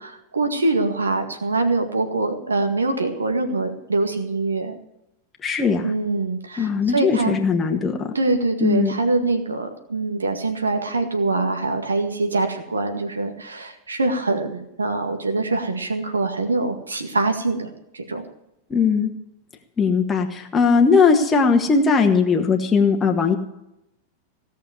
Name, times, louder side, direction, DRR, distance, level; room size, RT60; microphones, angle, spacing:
voice 1, 0.0-4.8 5.8-7.4 8.1-18.2, right 3 dB, 75° right, 6 dB, 1.9 m, -24 dB
voice 2, 5.4-5.9 6.6-8.1 8.6-8.9 18.7-19.1 19.8-23.4, left 5 dB, 15° left, 2 dB, 1.5 m, -19 dB
17.0 x 6.5 x 9.3 m, 0.85 s
figure-of-eight pair, 90°, 0 cm